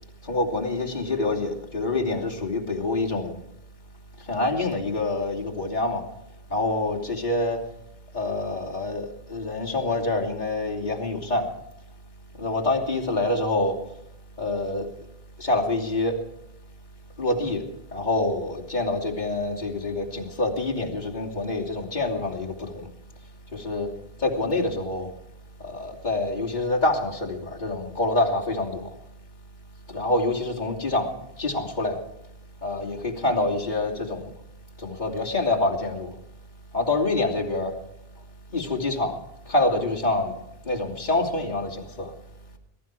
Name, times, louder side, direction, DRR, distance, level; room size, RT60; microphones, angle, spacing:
voice 1, 0.3-3.4 4.3-6.0 6.5-7.6 8.1-11.5 12.4-13.8 14.4-14.9 15.4-16.2 17.2-17.6 17.9-22.7 23.5-23.9 24.2-25.1 25.6-28.9 29.9-32.0 32.6-34.2 34.8-36.1 36.7-37.7 38.5-39.2 39.5-40.3 40.6-42.1, left 2 dB, 45° left, -3 dB, 3.1 m, -26 dB
22.0 x 12.5 x 4.8 m, 0.80 s
omnidirectional pair, 1.1 m